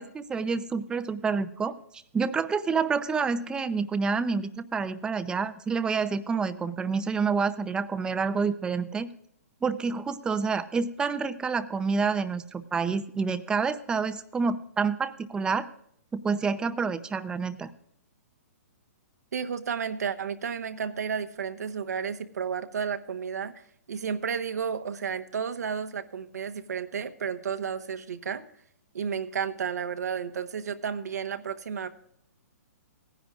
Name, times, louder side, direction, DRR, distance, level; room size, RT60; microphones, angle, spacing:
voice 1, 0.0-1.7 2.1-9.1 9.6-15.7 16.1-17.7, right 5 dB, 10° right, 12 dB, 0.6 m, -28 dB
voice 2, 19.3-23.5 23.9-28.4 28.9-31.9, right 7 dB, 80° right, 8 dB, 1.1 m, -32 dB
18.0 x 10.0 x 2.4 m, 0.69 s
hypercardioid pair, 140°, 9 cm